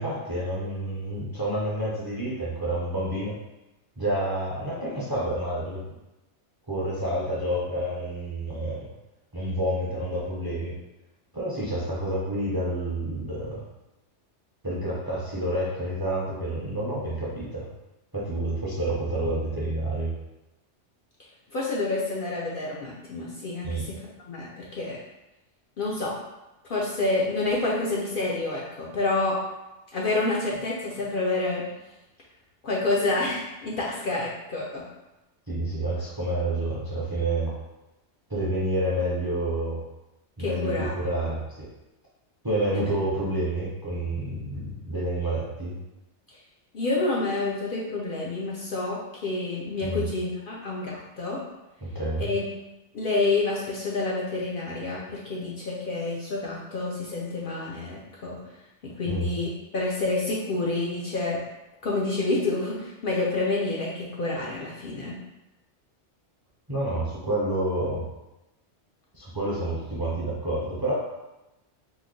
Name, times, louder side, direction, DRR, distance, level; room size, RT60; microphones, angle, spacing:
voice 1, 0.0-3.4 4.0-5.8 6.7-8.8 9.3-10.7 11.3-13.6 14.6-17.7 18.1-20.1 23.6-23.8 35.5-37.5 38.3-39.8 40.4-41.7 42.4-45.8 49.8-50.0 51.8-52.3 59.0-59.3 66.7-68.0 69.1-70.9, right 1 dB, 25° right, -7 dB, 0.5 m, -29 dB
voice 2, 21.5-25.0 25.8-26.1 26.6-29.4 29.9-31.7 32.6-34.8 40.4-40.9 42.7-42.8 46.7-51.4 52.2-52.4 52.9-58.4 58.8-61.4 61.8-65.1, left 2 dB, 60° left, -4 dB, 0.6 m, -28 dB
3.1 x 2.1 x 3.6 m, 0.99 s
omnidirectional pair, 1.2 m